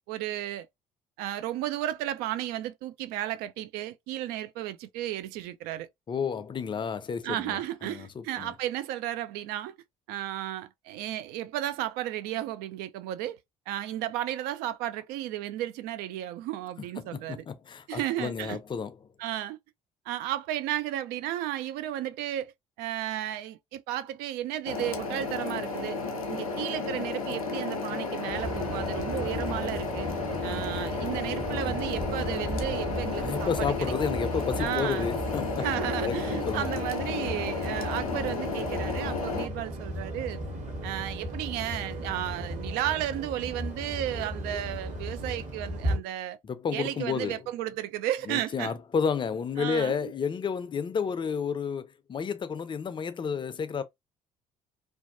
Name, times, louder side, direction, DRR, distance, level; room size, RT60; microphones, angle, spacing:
voice 1, 0.1-0.7 1.2-5.9 7.2-9.7 10.1-13.4 13.7-17.4 17.9-18.6 19.2-19.6 20.1-26.0 26.3-30.1 30.4-34.2 34.6-35.1 35.6-40.4 40.8-46.4 46.7-48.7 49.6-50.1, right 13 dB, 60° right, 0.4 m, -33 dB
voice 2, 6.1-8.5 17.0-19.0 33.2-35.6 36.0-36.7 46.4-47.4 48.3-53.8, left 6 dB, 30° left, 0.5 m, -31 dB
sound 1, 24.7-39.5, left 4 dB, 90° left, 0.4 m, -33 dB
sound 2, 28.3-35.3, right 1 dB, 25° right, 0.8 m, -41 dB
sound 3, 28.3-46.0, equal, 45° right, 1.2 m, -36 dB
2.5 x 2.2 x 2.5 m
figure-of-eight pair, 50°, 18 cm